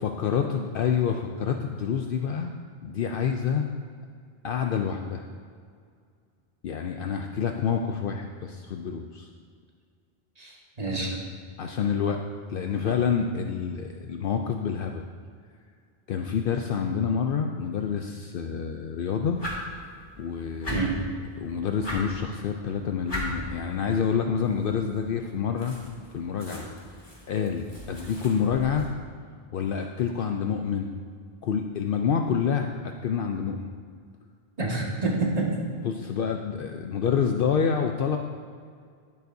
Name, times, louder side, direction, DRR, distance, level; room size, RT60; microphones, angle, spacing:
voice 1, 0.0-2.5 2.8-3.7 4.4-5.2 6.6-9.3 10.9-11.2 11.6-12.2 12.5-15.0 16.1-19.4 20.2-20.9 21.4-25.8 26.1-26.6 27.3-28.9 29.5-30.9 31.4-33.7 35.8-38.2, left 7 dB, 65° left, 4 dB, 0.7 m, -27 dB
voice 2, 10.4-11.1 20.7-21.0 34.6-35.6, right 3 dB, 40° right, -3 dB, 1.7 m, -28 dB
sound 1, 19.3-28.9, equal, 25° left, 2.0 m, -39 dB
11.0 x 10.5 x 2.7 m, 2.1 s
omnidirectional pair, 1.0 m